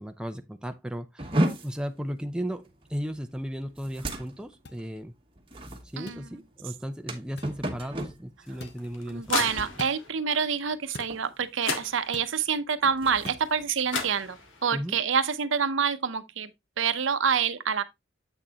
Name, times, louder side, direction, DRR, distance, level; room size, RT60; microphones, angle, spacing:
voice 1, 0.0-5.1 5.9-9.5 14.7-15.0, equal, 5° right, 0.4 m, -36 dB
sound 1, 1.2-10.8 11.1-11.5 11.9-12.1 12.7-14.6, right 1 dB, 25° right, 1.1 m, -35 dB
sound 2, 4.7-4.8 6.1-6.3 7.4-7.6 8.6-8.8 9.8-10.0 10.9-11.2 12.1-12.4 13.3-13.5, left 3 dB, 55° left, 0.7 m, -42 dB
sound 3, 8.5-10.1 11.2-11.3 11.6-12.5 13.6-13.7 13.9-14.8, left 4 dB, 80° left, 1.6 m, -34 dB
voice 2, 9.1-16.5 16.8-17.8, right 6 dB, 75° right, 0.7 m, -27 dB
7.9 x 6.2 x 2.8 m
head